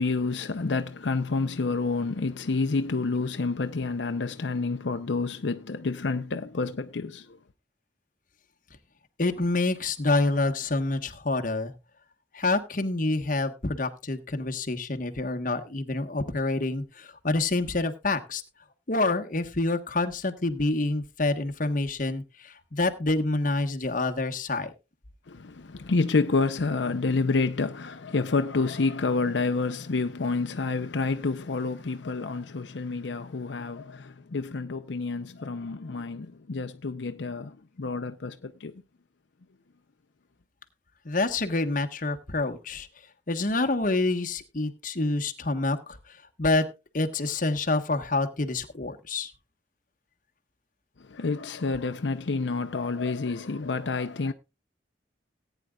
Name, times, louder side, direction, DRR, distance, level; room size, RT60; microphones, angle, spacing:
voice 1, 0.0-7.4 25.3-38.7 51.1-54.3, left 3 dB, 85° left, 0.6 m, -29 dB
voice 2, 9.2-11.7 12.3-18.4 18.9-24.7 41.0-42.9 43.3-46.0 46.4-46.7 46.9-49.3, left 2 dB, 50° left, 1.2 m, -27 dB
18.5 x 9.2 x 2.3 m
head